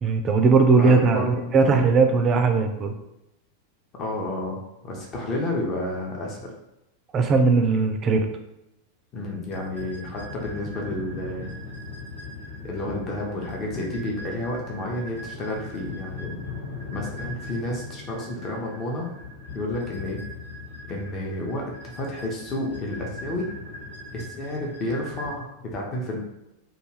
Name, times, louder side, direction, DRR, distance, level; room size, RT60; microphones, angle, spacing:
voice 1, 0.0-2.9 7.1-8.3, right 4 dB, 30° right, 5 dB, 0.3 m, -19 dB
voice 2, 0.8-1.5 4.0-6.5 9.1-11.5 12.6-16.4 16.9-19.1 19.5-20.2 20.9-23.5 24.1-26.2, left 1 dB, 30° left, -1 dB, 0.6 m, -31 dB
sound 1, 9.5-25.4, left 2 dB, 70° left, 1.1 m, -39 dB
2.3 x 2.3 x 3.1 m, 0.89 s
figure-of-eight pair, 90°, 0 cm